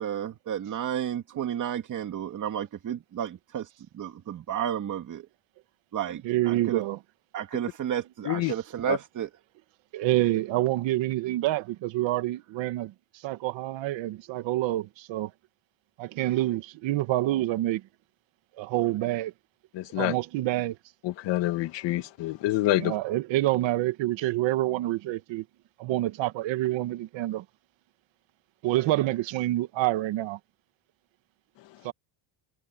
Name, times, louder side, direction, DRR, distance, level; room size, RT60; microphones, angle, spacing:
voice 1, 0.0-3.7 3.9-5.3 5.9-6.8 7.3-9.3, right 9 dB, 35° right, 2.6 m, -32 dB
voice 2, 6.2-7.0 9.9-12.9 13.2-15.3 16.0-17.8 18.6-19.3 20.0-20.8 22.8-25.4 25.8-27.4 28.6-30.4 31.8-31.9, right 16 dB, 60° right, 1.9 m, -27 dB
voice 3, 19.7-20.1 21.0-23.0, left 15 dB, 60° left, 2.0 m, -27 dB
cardioid pair, 155°, 50 cm